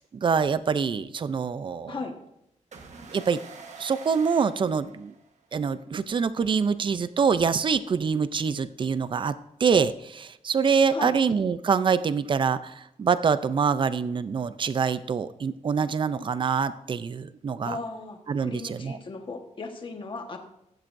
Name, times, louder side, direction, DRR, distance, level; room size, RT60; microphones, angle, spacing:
voice 1, 0.0-2.0 3.1-3.4 3.8-5.1 5.5-9.3 9.6-17.8 18.3-19.0, right 6 dB, 40° right, 13 dB, 0.5 m, -25 dB
sound 1, 2.7-5.5, right 5 dB, 65° right, 1.3 m, -46 dB
voice 2, 17.6-20.4, left 3 dB, 40° left, 4 dB, 1.4 m, -36 dB
15.5 x 12.0 x 2.6 m, 0.82 s
wide cardioid pair, 155°, 13 cm